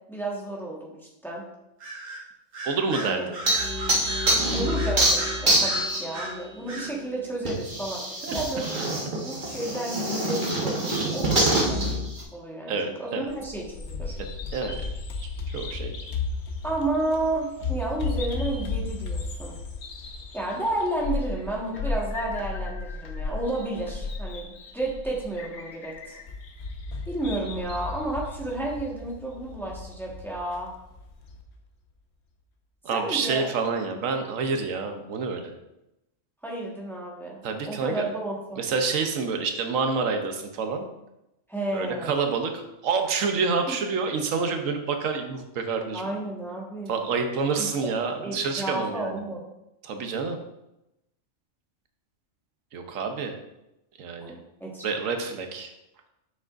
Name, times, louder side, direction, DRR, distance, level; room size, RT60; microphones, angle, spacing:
voice 1, 0.1-1.4 3.0-3.3 4.5-8.6 9.0-11.8 12.3-14.2 16.6-19.5 20.3-26.2 27.1-30.7 32.9-33.5 36.4-38.6 41.5-42.1 43.7-43.8 45.9-46.9 47.6-47.9 48.2-49.4 54.2-54.8, right 2 dB, ahead, -4 dB, 1.3 m, -32 dB
Bird vocalization bird call bird song, 1.8-2.2 2.5-6.4 6.7-6.9, right 2 dB, 60° right, 1.5 m, -36 dB
voice 2, 2.6-3.4 8.2-8.4 12.7-13.3 14.5-14.8 15.2-15.9 32.8-35.5 37.4-38.1 38.6-40.8 41.7-46.0 46.9-49.1 49.8-50.4 52.7-53.3 54.0-54.3 54.8-55.7, right 4 dB, 85° right, 5 dB, 1.2 m, -28 dB
sound 1, 3.5-6.2 7.5-12.2, right 1 dB, 40° right, 1.3 m, -25 dB
Bird vocalization bird call bird song 2, 13.3-31.4, left 3 dB, 60° left, 1.0 m, -34 dB
7.6 x 6.2 x 2.5 m, 0.89 s
omnidirectional pair, 1.3 m